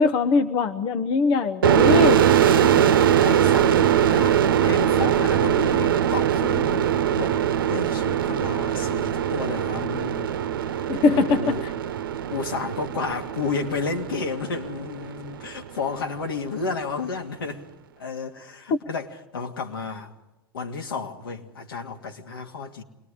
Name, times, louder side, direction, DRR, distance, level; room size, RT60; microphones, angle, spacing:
voice 1, 0.0-2.3 10.9-11.7 18.7-18.8, left 4 dB, 45° left, 1.0 m, -21 dB
sound 1, 1.6-15.1, right 9 dB, 70° right, 1.0 m, -21 dB
voice 2, 2.5-10.3 10.6-10.8 11.1-11.6 12.3-17.6 18.0-20.1 20.5-22.8, left 4 dB, 75° left, 2.5 m, -32 dB
28.0 x 21.0 x 5.0 m
figure-of-eight pair, 90°, 12 cm